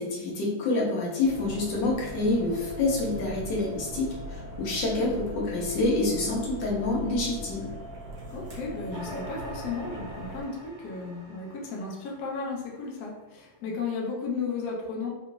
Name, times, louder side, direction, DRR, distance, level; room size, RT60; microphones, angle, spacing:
voice 1, 0.0-7.7, left 2 dB, 60° left, -3 dB, 1.3 m, -27 dB
sound 1, 1.2-10.4, right 1 dB, 65° right, 1.2 m, -40 dB
voice 2, 8.3-15.1, left 4 dB, 80° left, -2 dB, 0.9 m, -34 dB
sound 2, 8.9-13.4, right 2 dB, 45° right, 1.1 m, -45 dB
4.0 x 2.9 x 2.2 m, 1.1 s
omnidirectional pair, 2.4 m